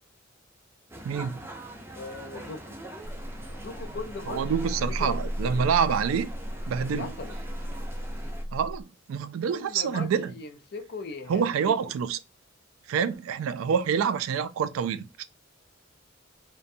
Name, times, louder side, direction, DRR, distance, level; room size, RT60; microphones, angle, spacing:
sound 1, 0.9-8.4, right 1 dB, 10° right, 0.5 m, -43 dB
voice 1, 1.0-1.4 4.3-6.3 6.7-7.1 8.5-10.3 11.3-12.2 12.9-15.2, right 7 dB, 80° right, 0.3 m, -27 dB
voice 2, 1.9-2.8 3.5-5.6 6.9-7.3 9.5-11.9, left 3 dB, 50° left, 0.4 m, -40 dB
sound 2, 3.0-8.8, equal, 20° left, 0.7 m, -35 dB
2.5 x 2.1 x 2.6 m
head